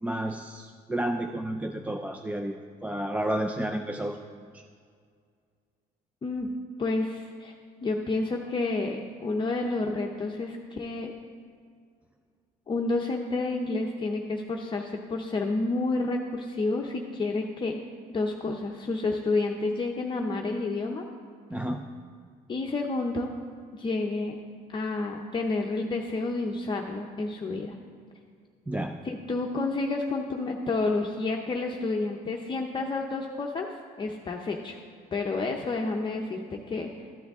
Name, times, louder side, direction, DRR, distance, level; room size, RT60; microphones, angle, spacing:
voice 1, 0.0-2.5 2.8-4.6 21.5-21.8 28.7-29.0, right 1 dB, 10° right, 6 dB, 0.4 m, -31 dB
voice 2, 6.8-7.5 7.8-11.1 12.7-17.8 18.1-21.0 22.5-23.3 23.8-24.3 24.7-27.8 29.0-33.7 34.0-34.8 35.1-36.9, left 3 dB, 30° left, 1 dB, 0.7 m, -30 dB
13.5 x 7.8 x 3.6 m, 2.1 s
cardioid pair, 110°, 17 cm